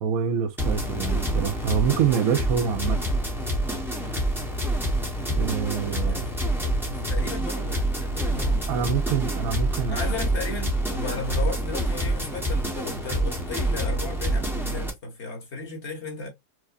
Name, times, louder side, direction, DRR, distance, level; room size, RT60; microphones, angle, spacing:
voice 1, 0.0-3.1 5.3-6.3 8.7-10.0, right 8 dB, 70° right, 1.0 m, -26 dB
sound 1, 0.6-14.9, right 1 dB, ahead, 0.8 m, -27 dB
voice 2, 5.8-8.7 9.9-16.3, left 3 dB, 45° left, 1.5 m, -35 dB
4.7 x 2.1 x 2.5 m
omnidirectional pair, 1.7 m